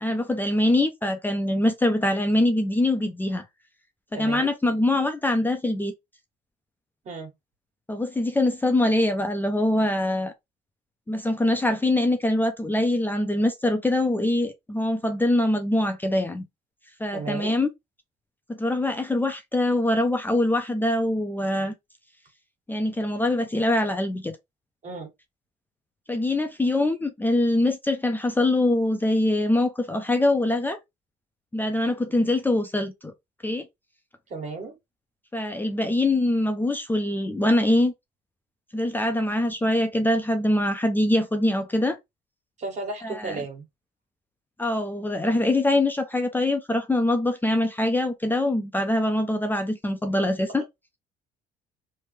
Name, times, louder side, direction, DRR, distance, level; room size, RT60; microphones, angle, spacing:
voice 1, 0.0-3.4 4.1-5.9 7.9-10.3 11.1-16.4 17.0-17.7 18.5-21.7 22.7-24.4 26.1-30.8 31.5-33.1 33.4-33.7 35.3-37.9 38.7-42.0 43.0-43.4 44.6-50.6, left 1 dB, 10° left, 0.5 m, -23 dB
voice 2, 4.1-4.5 7.0-7.3 17.1-17.5 24.8-25.1 32.1-32.2 34.3-34.7 42.6-43.6, right 3 dB, 45° right, 1.6 m, -34 dB
3.2 x 2.1 x 3.1 m
cardioid pair, 110°, 17 cm